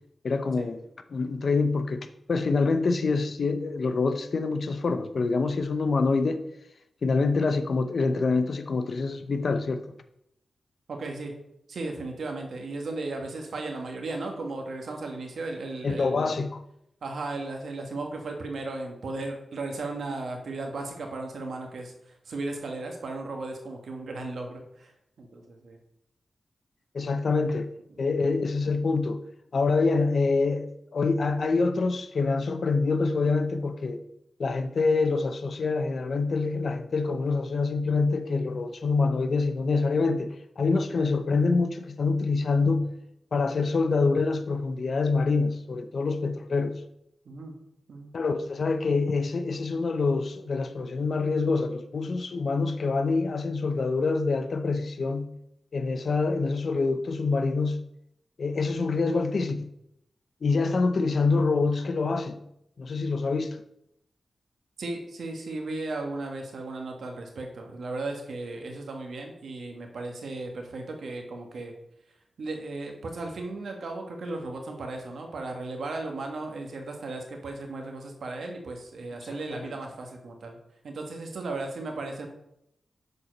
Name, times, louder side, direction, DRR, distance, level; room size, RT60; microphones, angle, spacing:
voice 1, 0.2-0.8 1.1-6.4 7.0-9.8 15.8-16.6 26.9-27.7 28.0-29.2 29.5-34.0 34.4-40.3 40.6-42.9 43.3-46.8 48.1-55.3 55.7-57.8 58.4-59.7 60.4-62.4 62.8-63.6 79.3-79.7, left 4 dB, 60° left, 0.6 m, -26 dB
voice 2, 10.9-11.3 11.7-16.4 17.0-24.9 25.2-25.8 27.9-28.0 28.3-28.5 47.2-47.5 47.9-48.1 64.8-71.7 72.4-80.6 80.8-82.3, right 2 dB, 80° right, 1.3 m, -36 dB
6.8 x 4.4 x 5.1 m
wide cardioid pair, 85°, 0 cm